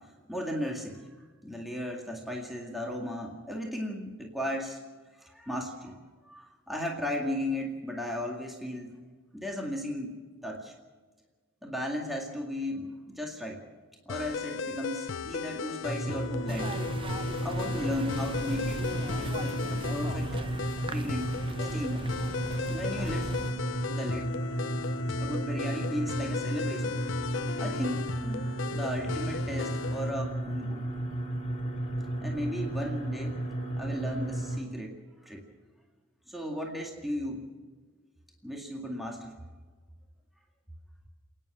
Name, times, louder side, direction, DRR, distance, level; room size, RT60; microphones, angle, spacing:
voice 1, 0.3-1.1 1.4-4.8 5.2-6.0 6.3-8.9 9.3-10.2 10.4-10.7 11.6-13.6 14.1-16.7 17.4-20.4 20.9-21.3 21.7-22.0 22.7-23.3 23.9-24.3 25.2-27.1 27.6-30.8 32.2-33.4 33.8-35.5 36.3-37.5 38.4-39.3, equal, ahead, 0 dB, 2.1 m, -35 dB
sound 1, 14.1-30.1, left 5 dB, 80° left, 0.6 m, -37 dB
sound 2, 15.8-34.6, right 1 dB, 30° left, 3.8 m, -33 dB
sound 3, 16.5-23.5, right 2 dB, 25° right, 0.8 m, -41 dB
29.0 x 10.0 x 8.9 m, 1.4 s
head